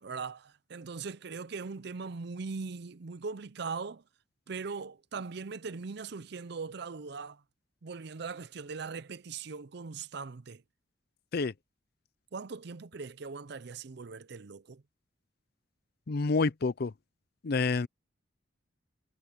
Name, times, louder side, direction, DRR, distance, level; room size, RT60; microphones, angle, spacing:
voice 1, 0.0-4.0 4.5-7.4 7.8-10.6 12.3-14.8, right 4 dB, 60° right, 0.6 m, -40 dB
voice 2, 16.1-16.9 17.4-17.9, left 4 dB, 55° left, 0.5 m, -28 dB
head